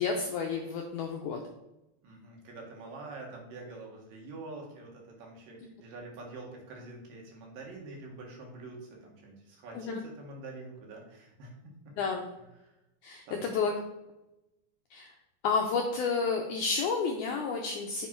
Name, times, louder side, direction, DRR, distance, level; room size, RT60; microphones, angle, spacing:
voice 1, 0.0-1.4 9.7-10.0 12.0-12.2 13.0-13.7 14.9-15.1 15.4-18.1, left 5 dB, 80° left, 2 dB, 1.8 m, -30 dB
voice 2, 2.0-11.6 11.8-11.9 12.6-12.7 13.3-13.4, right 3 dB, 70° right, 0 dB, 3.0 m, -46 dB
7.3 x 5.3 x 4.4 m, 0.91 s
omnidirectional pair, 4.3 m